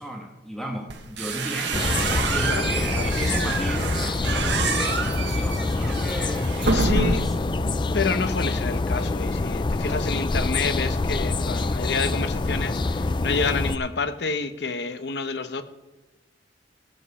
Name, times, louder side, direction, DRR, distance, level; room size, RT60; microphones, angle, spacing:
voice 1, 0.0-4.0 4.3-7.5, right 1 dB, ahead, 1 dB, 1.3 m, -35 dB
sound 1, 0.9-7.5, right 3 dB, 75° right, 1.3 m, -27 dB
sound 2, 1.7-13.8, left 3 dB, 25° left, 0.4 m, -26 dB
voice 2, 2.5-3.5 6.7-7.2 7.9-15.6, left 4 dB, 70° left, 11 dB, 0.9 m, -29 dB
16.0 x 7.8 x 4.2 m, 1.2 s
head